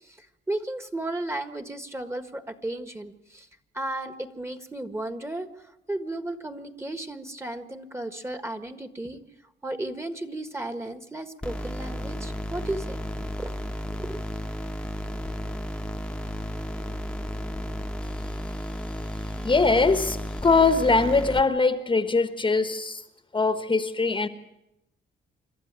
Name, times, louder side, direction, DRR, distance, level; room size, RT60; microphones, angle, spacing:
voice 1, 0.0-3.5 3.7-5.5 5.9-9.2 9.6-13.5 13.9-14.2, right 1 dB, 15° right, 9 dB, 1.6 m, -34 dB
sound 1, 11.4-21.4, equal, 5° left, 1.2 m, -33 dB
voice 2, 19.4-23.0 23.3-24.3, left 3 dB, 25° left, 10 dB, 1.3 m, -22 dB
26.5 x 12.5 x 9.0 m, 0.89 s
cardioid pair, 90°, 20 cm